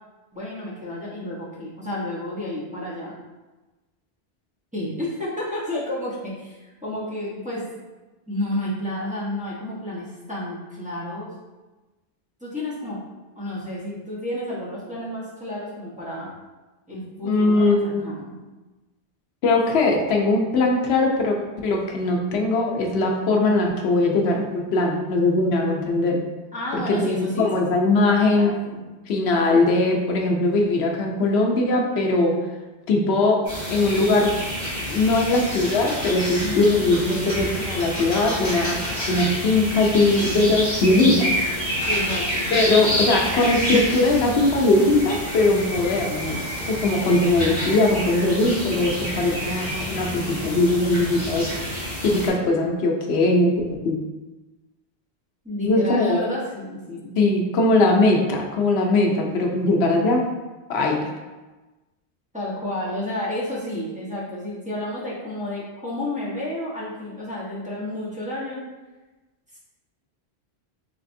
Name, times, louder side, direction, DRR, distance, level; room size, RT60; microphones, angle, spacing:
voice 1, 0.3-3.1 4.7-7.6 8.3-11.3 12.4-13.0 13.3-16.3 16.9-18.4 26.5-27.8 28.3-28.8 36.4-36.9 41.9-42.9 55.4-57.2 62.3-68.6 69.5-69.6, left 1 dB, 10° right, -8 dB, 0.8 m, -31 dB
voice 2, 17.2-18.1 19.4-21.4 21.6-26.2 26.7-28.5 29.1-32.4 32.9-33.4 33.7-34.3 34.9-38.8 39.1-41.3 42.5-46.4 46.8-51.5 52.0-54.0 55.6-56.2 57.2-60.2 60.7-61.1, left 2 dB, 80° left, 1 dB, 0.8 m, -20 dB
sound 1, 33.4-52.3, equal, 15° left, 1.4 m, -28 dB
3.3 x 3.2 x 2.6 m, 1.2 s
omnidirectional pair, 1.1 m